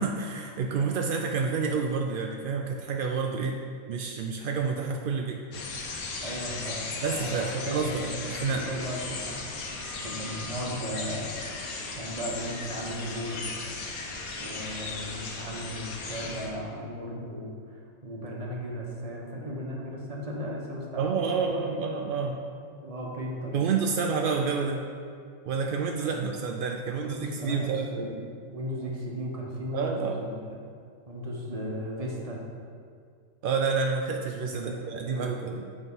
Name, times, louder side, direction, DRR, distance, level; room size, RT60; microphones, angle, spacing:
voice 1, 0.0-3.6 3.9-5.4 7.0-8.7 21.0-22.4 23.5-24.8 25.5-28.1 29.7-30.3 33.4-35.7, right 5 dB, 75° right, 2 dB, 0.5 m, -29 dB
sound 1, 5.5-16.5, left 3 dB, 90° left, 1.3 m, -37 dB
voice 2, 6.2-8.2 8.5-9.4 10.0-11.4 11.9-13.5 14.4-21.8 22.6-23.6 27.1-28.2 28.5-30.4 31.1-32.4 34.5-35.4, equal, 30° right, -2 dB, 1.0 m, -36 dB
7.9 x 3.7 x 5.4 m, 2.2 s
omnidirectional pair, 1.4 m